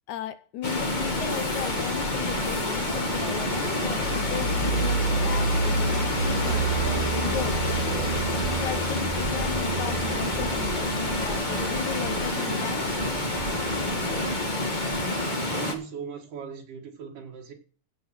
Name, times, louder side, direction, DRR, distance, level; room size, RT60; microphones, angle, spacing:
voice 1, 0.1-7.8 8.6-12.9, left 10 dB, 75° left, 2.0 m, -37 dB
Water, 0.6-15.7, left 1 dB, 30° left, 0.8 m, -28 dB
sound 1, 0.7-14.4, right 2 dB, 50° left, 2.8 m, -31 dB
Bird, 2.2-15.3, right 4 dB, 45° right, 1.2 m, -39 dB
voice 2, 15.0-17.5, right 6 dB, 80° right, 3.4 m, -39 dB
15.5 x 5.3 x 6.0 m
omnidirectional pair, 3.7 m